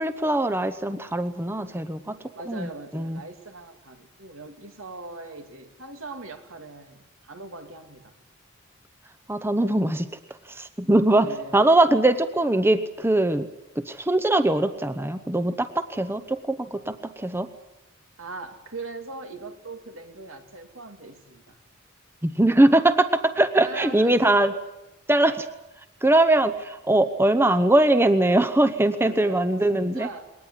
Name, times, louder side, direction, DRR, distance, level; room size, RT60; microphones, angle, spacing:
voice 1, 0.0-2.2 2.5-2.7 2.9-3.2 9.3-10.1 10.5-13.5 13.8-17.5 22.2-24.5 25.1-25.5 26.0-30.1, right 1 dB, 10° right, 11 dB, 0.8 m, -21 dB
voice 2, 2.3-8.1 11.1-11.6 18.2-21.6 23.6-24.5 29.0-30.3, right 3 dB, 80° right, 6 dB, 2.7 m, -40 dB
22.0 x 19.0 x 9.9 m, 0.97 s
head